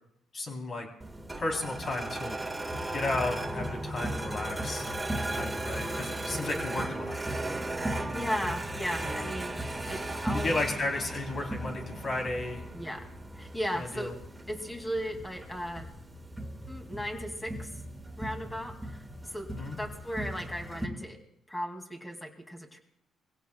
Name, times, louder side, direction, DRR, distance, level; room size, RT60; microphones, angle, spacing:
voice 1, 0.3-0.9 1.4-2.4 2.9-4.8 5.3-7.2 10.3-12.6 13.8-14.2 19.6-19.8, left 2 dB, 45° left, 1 dB, 3.7 m, -33 dB
sound 1, 1.0-20.9, right 1 dB, 10° right, 2.1 m, -36 dB
voice 2, 8.0-10.6 12.7-13.1 13.3-14.1 14.5-15.9 16.7-17.7 18.2-19.0 19.3-19.5 19.8-21.2 21.5-22.8, equal, 15° left, 3 dB, 2.6 m, -36 dB
24.0 x 16.5 x 2.4 m, 0.72 s
cardioid pair, 90°, 0 cm